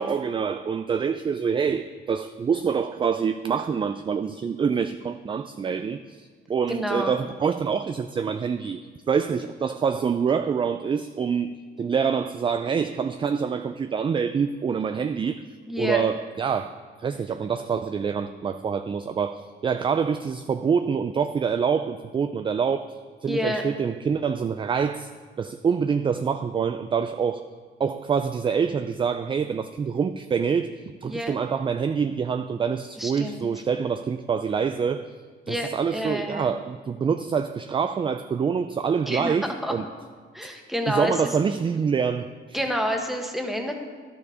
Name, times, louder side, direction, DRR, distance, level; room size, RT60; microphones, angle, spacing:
voice 1, 0.0-15.4 15.8-16.7 17.0-22.9 23.2-25.1 25.4-27.4 27.8-35.1 35.5-39.8 40.4-40.5 40.9-42.6, right 6 dB, 25° right, 10 dB, 0.3 m, -26 dB
voice 2, 6.7-7.1 15.7-16.0 23.3-23.6 31.1-31.3 33.0-33.5 35.5-36.5 39.1-39.7 40.3-41.2 42.5-43.7, equal, ahead, 3 dB, 1.3 m, -28 dB
11.0 x 6.9 x 4.9 m, 1.5 s
cardioid pair, 90°, 20 cm